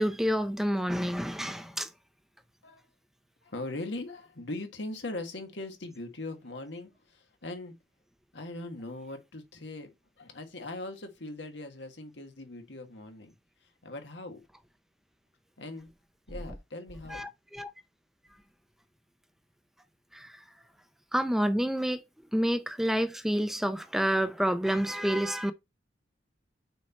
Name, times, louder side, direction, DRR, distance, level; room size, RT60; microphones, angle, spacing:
voice 1, 0.0-1.9 17.1-17.7 20.1-20.4 21.1-22.0 22.3-25.5, equal, ahead, 0.4 m, -28 dB
voice 2, 3.4-7.7 8.3-13.3 13.6-14.4 15.6-15.9 16.3-17.3, left 2 dB, 85° left, 1.6 m, -40 dB
6.2 x 4.4 x 4.1 m
head